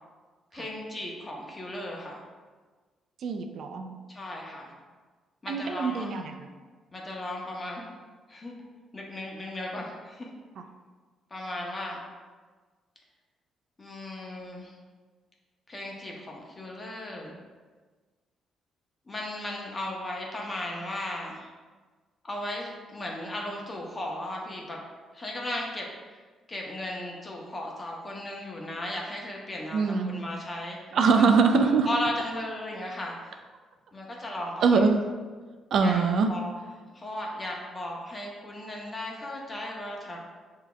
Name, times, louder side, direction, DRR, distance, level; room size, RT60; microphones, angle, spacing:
voice 1, 0.5-2.2 4.1-4.7 5.4-6.2 6.9-7.9 8.3-8.5 8.9-10.3 11.3-12.0 13.8-14.7 15.7-17.4 19.1-21.5 22.2-24.8 25.1-26.2 26.5-30.8 31.1-31.2 31.9-33.4 33.9-34.9 35.8-36.0 36.3-36.5 36.9-40.2, left 1 dB, 25° left, -1 dB, 0.9 m, -36 dB
voice 2, 3.2-4.0 5.5-6.5 29.7-30.1 30.9-31.9 34.6-35.0 35.7-36.3, right 4 dB, 65° right, 5 dB, 0.3 m, -23 dB
6.7 x 2.8 x 2.3 m, 1.4 s
cardioid pair, 90°, 0 cm